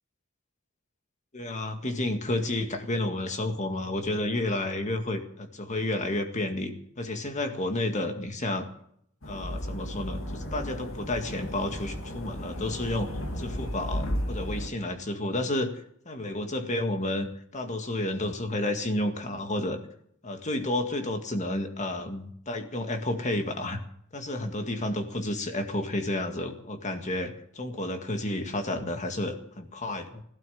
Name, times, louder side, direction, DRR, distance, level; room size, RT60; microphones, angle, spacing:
voice 1, 1.3-8.7 9.2-13.1 13.4-15.7 16.1-19.8 20.2-23.8 24.1-30.2, left 1 dB, 35° left, 6 dB, 2.0 m, -31 dB
sound 1, 9.2-14.7, equal, 90° left, 2.6 m, -34 dB
15.0 x 13.0 x 7.1 m, 0.67 s
head